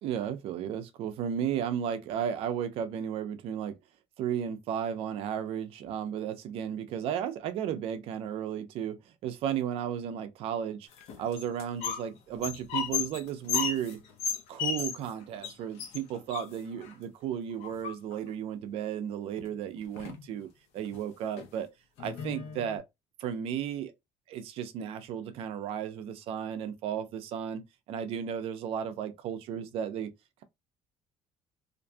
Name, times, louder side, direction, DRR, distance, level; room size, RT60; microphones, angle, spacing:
voice 1, 0.0-3.8 4.2-10.9 11.2-14.0 14.5-21.7 22.0-22.8 23.2-23.9 24.3-27.6 27.9-30.1, right 9 dB, 65° right, 0.5 m, -34 dB
sound 1, 10.9-12.1 12.3-15.1 15.4-15.5 15.8-16.9 17.6-18.3 19.4-19.5 19.8-20.3 20.8-21.0 21.4-21.5 22.0-22.8, left 7 dB, 80° left, 0.7 m, -34 dB
2.5 x 2.3 x 2.5 m
cardioid pair, 160°, 11 cm